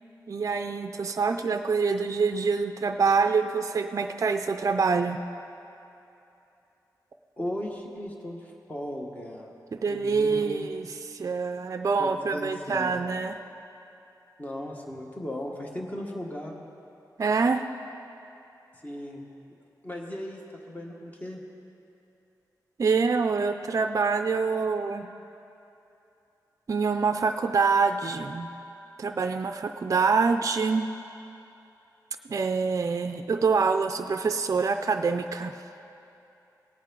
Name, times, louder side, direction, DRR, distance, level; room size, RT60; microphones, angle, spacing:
voice 1, 0.3-5.2 9.7-13.4 17.2-17.7 22.8-25.1 26.7-28.5 29.0-30.9 32.3-35.6, right 4 dB, 45° right, 7 dB, 0.4 m, -26 dB
voice 2, 7.4-9.5 9.9-10.7 12.0-13.0 14.4-16.7 18.8-19.3 19.8-20.4 20.7-21.4, equal, 20° left, 0 dB, 1.5 m, -36 dB
18.0 x 8.7 x 3.8 m, 2.8 s
wide cardioid pair, 95°, 7 cm